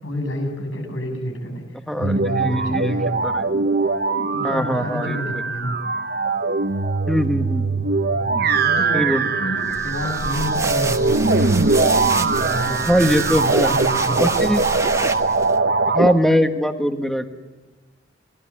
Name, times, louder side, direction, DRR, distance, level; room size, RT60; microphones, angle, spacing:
voice 1, 0.0-1.6 2.0-3.1 4.3-5.8 8.1-9.1 9.4-11.2 12.3-14.4, equal, 85° left, 3 dB, 7.7 m, -29 dB
voice 2, 1.9-3.0 3.2-3.5 4.4-5.2 7.1-7.8 8.9-9.2 12.9-13.8 14.1-14.6 15.9-17.3, equal, ahead, 6 dB, 1.5 m, -21 dB
sound 1, 2.0-16.1, right 3 dB, 50° right, 1.1 m, -21 dB
sound 2, 9.6-15.6, right 3 dB, 15° right, 1.0 m, -29 dB
23.5 x 19.0 x 9.9 m, 1.3 s
head